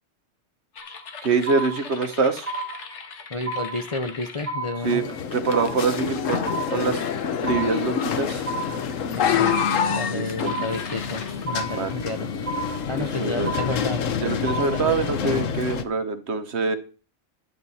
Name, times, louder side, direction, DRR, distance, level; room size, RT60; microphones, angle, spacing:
sound 1, 0.7-5.3 5.9-6.2 6.8-7.6 8.0-8.4 9.1-9.8 10.4-12.7, left 5 dB, 65° left, 1.5 m, -41 dB
sound 2, 0.8-1.1 1.5-2.1 2.5-3.1 3.5-4.1 4.5-5.1 5.5-6.1 6.5-7.1 7.5-8.1 8.5-9.1 9.5-10.1 10.5-11.1 11.5-12.1 12.5-13.1 13.5-14.1 14.5-15.1, right 2 dB, 30° right, 1.2 m, -32 dB
voice 1, 1.2-2.5 4.8-5.0 5.3-7.0 7.4-8.4 10.1-10.5 11.7-12.0 12.9-13.5 14.2-16.8, right 4 dB, 60° right, 9 dB, 1.3 m, -25 dB
voice 2, 3.3-5.1 9.2-9.5 9.9-12.3 12.9-14.0 14.5-14.9, left 2 dB, 35° left, 6 dB, 0.6 m, -31 dB
sound 3, 4.8-15.8, left 7 dB, 85° left, 1.3 m, -27 dB
11.0 x 8.8 x 4.2 m, 0.36 s
omnidirectional pair, 1.3 m